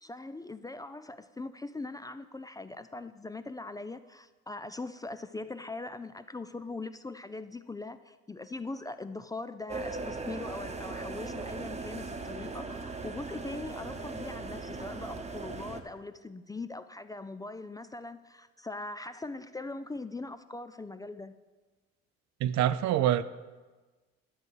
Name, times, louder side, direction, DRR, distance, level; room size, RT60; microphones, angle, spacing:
voice 1, 0.0-21.3, left 2 dB, 15° left, 0.3 m, -41 dB
sound 1, 9.7-15.8, right 3 dB, 20° right, 1.0 m, -39 dB
voice 2, 22.4-23.2, right 11 dB, 70° right, 0.5 m, -25 dB
11.0 x 4.6 x 8.0 m
cardioid pair, 95°, 29 cm